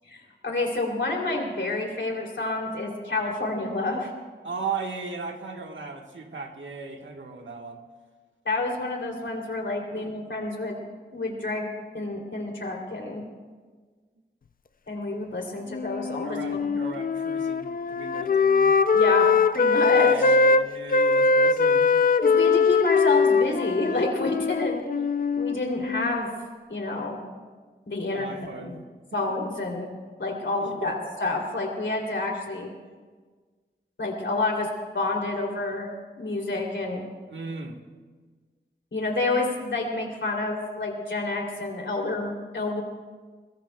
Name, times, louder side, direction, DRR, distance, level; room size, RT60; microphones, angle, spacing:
voice 1, 0.1-4.1 8.4-10.8 11.1-11.7 11.9-13.2 14.9-16.8 18.9-20.3 22.2-24.8 25.4-26.3 26.7-27.2 27.9-28.3 28.6-28.8 29.1-29.9 30.2-32.7 34.0-34.7 34.9-35.9 36.2-37.0 38.9-42.8, left 2 dB, 80° left, 0 dB, 3.0 m, -29 dB
voice 2, 4.4-7.8 9.9-10.1 16.2-18.8 19.9-21.9 28.1-28.8 30.6-31.0 37.3-37.8, right 4 dB, 90° right, 3 dB, 1.4 m, -37 dB
Wind instrument woodwind instrument, 15.7-20.6 20.9-26.2, left 4 dB, 50° left, 0.4 m, -22 dB
22.0 x 22.0 x 2.3 m, 1.5 s
wide cardioid pair, 75°, 19 cm